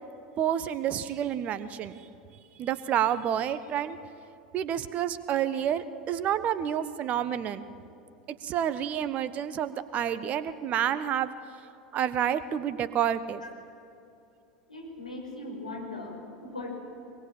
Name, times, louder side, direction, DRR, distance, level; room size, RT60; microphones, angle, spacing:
voice 1, 0.4-2.0 2.6-4.0 4.5-7.7 8.4-11.3 11.9-13.4, right 10 dB, 35° right, 13 dB, 1.3 m, -29 dB
voice 2, 14.7-16.8, left 2 dB, 85° left, -1 dB, 5.9 m, -39 dB
24.0 x 22.0 x 9.0 m, 2.7 s
figure-of-eight pair, 80°, 4 cm